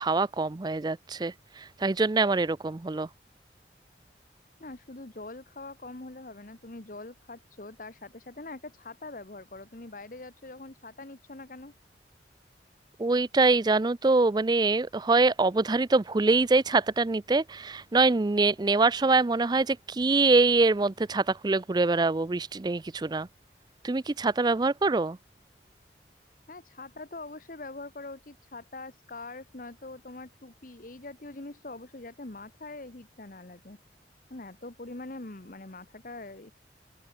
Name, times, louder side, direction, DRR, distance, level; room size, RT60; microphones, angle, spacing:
voice 1, 0.0-3.1 13.0-23.3 23.8-25.2, right 3 dB, 25° right, 0.4 m, -24 dB
voice 2, 4.6-11.7 26.5-33.8 34.3-36.5, left 2 dB, 50° left, 1.2 m, -43 dB
open air
head